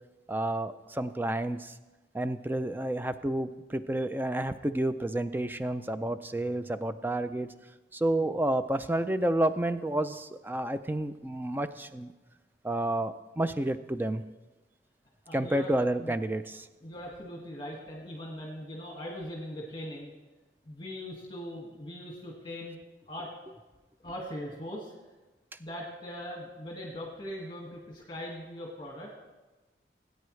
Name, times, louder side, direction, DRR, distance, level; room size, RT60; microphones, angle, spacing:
voice 1, 0.3-1.7 2.1-7.5 7.9-12.1 12.6-14.2 15.3-16.7, right 1 dB, 10° right, 11 dB, 0.4 m, -30 dB
voice 2, 15.2-15.7 16.0-16.2 16.8-20.1 20.6-22.8 23.1-23.3 24.0-24.9 25.6-29.1, equal, 25° left, -2 dB, 1.8 m, -40 dB
19.0 x 9.2 x 3.2 m, 1.2 s
head